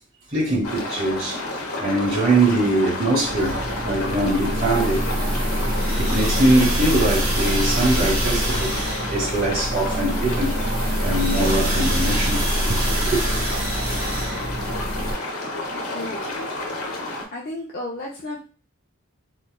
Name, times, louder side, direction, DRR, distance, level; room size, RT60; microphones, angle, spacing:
voice 1, 0.3-1.4 1.8-5.0 6.0-8.7 9.1-10.5 11.0-12.4 12.7-13.2, right 2 dB, 45° right, 1.7 m, -22 dB
sound 1, 0.6-17.2, left 2 dB, 90° left, 0.8 m, -30 dB
sound 2, 3.2-15.1, equal, 75° right, 1.3 m, -24 dB
voice 2, 15.9-16.3 17.3-18.4, left 2 dB, 45° left, 0.5 m, -32 dB
4.1 x 2.3 x 2.2 m
head